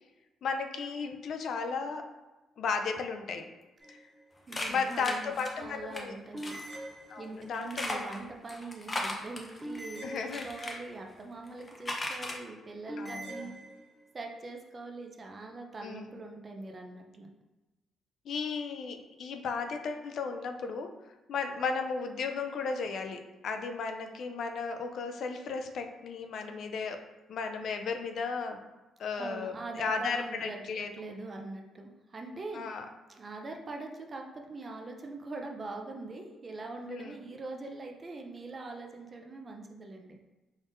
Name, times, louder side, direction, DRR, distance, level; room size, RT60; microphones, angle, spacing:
voice 1, 0.4-2.1 2.6-3.5 3.9-4.1 4.7-6.1 7.1-8.1 10.0-10.8 13.0-13.5 15.8-16.2 18.3-20.9 21.3-27.0 27.3-28.6 29.0-31.1 32.5-32.9 36.8-37.2, left 5 dB, 65° left, 6 dB, 0.4 m, -35 dB
sound 1, 3.8-4.4 6.3-7.6 9.6-10.9 12.9-14.2, right 1 dB, 10° right, 1.3 m, -43 dB
sound 2, 4.5-6.0 6.4-6.7 7.5-10.7 11.5-12.4, left 1 dB, 30° left, 0.7 m, -37 dB
voice 2, 4.5-6.6 7.2-13.5 14.1-17.3 29.2-32.6 33.1-40.2, right 3 dB, 35° right, 2 dB, 0.6 m, -43 dB
3.8 x 3.5 x 2.6 m, 1.1 s
cardioid pair, 85°, 0 cm